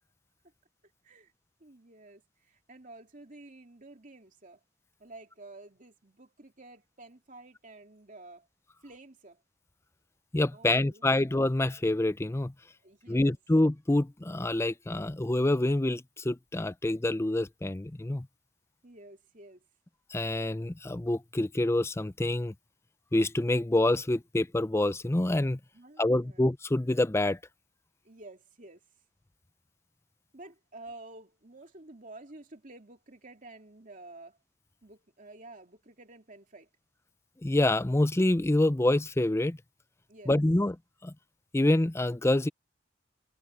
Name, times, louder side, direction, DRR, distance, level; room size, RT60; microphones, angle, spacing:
voice 1, 1.6-4.6 5.0-8.5 8.8-9.4 10.5-11.2 12.8-13.4 18.8-19.6 25.7-26.4 28.0-28.8 30.3-34.4 34.8-36.7 40.1-40.4, right 2 dB, 45° right, 2.7 m, -51 dB
voice 2, 10.3-12.5 13.1-18.3 20.1-22.5 23.1-25.6 26.0-27.4 37.4-39.6 40.3-40.8 41.0-41.1 41.5-42.5, left 1 dB, 15° left, 0.5 m, -26 dB
head